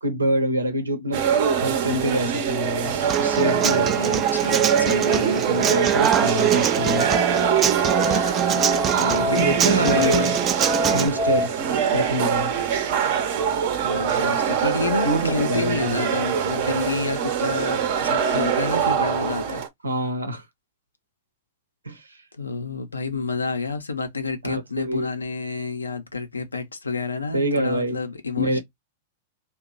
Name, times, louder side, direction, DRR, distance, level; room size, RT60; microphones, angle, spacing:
voice 1, 0.0-1.3 1.6-2.9 3.2-4.0 5.1-7.1 9.3-10.2 10.9-11.5 11.9-12.5 15.0-16.0 19.2-19.3 19.8-20.4 21.8-22.2 24.4-25.1 27.3-28.0 28.4-28.6, equal, 85° right, 0.8 m, -25 dB
sound 1, 1.1-19.7, right 8 dB, 55° right, 0.8 m, -24 dB
Human voice / Acoustic guitar, 3.1-11.1, right 9 dB, 30° right, 0.4 m, -24 dB
voice 2, 4.0-5.4 9.0-10.4 13.7-19.6 22.4-28.6, left 4 dB, 85° left, 0.7 m, -29 dB
Musical instrument, 6.2-11.5, left 2 dB, 30° left, 0.4 m, -28 dB
2.9 x 2.3 x 3.7 m
figure-of-eight pair, 100°, 0 cm